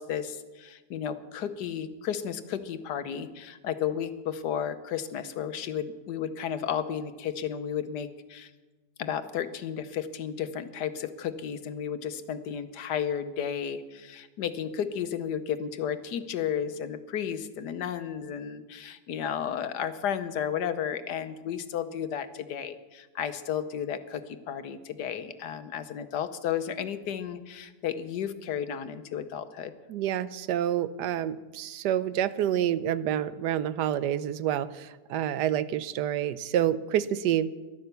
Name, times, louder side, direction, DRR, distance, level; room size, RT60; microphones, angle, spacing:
voice 1, 0.0-8.5 9.0-29.7, left 8 dB, 75° left, 11 dB, 1.4 m, -33 dB
voice 2, 29.9-37.5, right 11 dB, 80° right, 15 dB, 1.2 m, -28 dB
14.5 x 11.5 x 6.8 m, 1.2 s
omnidirectional pair, 1.8 m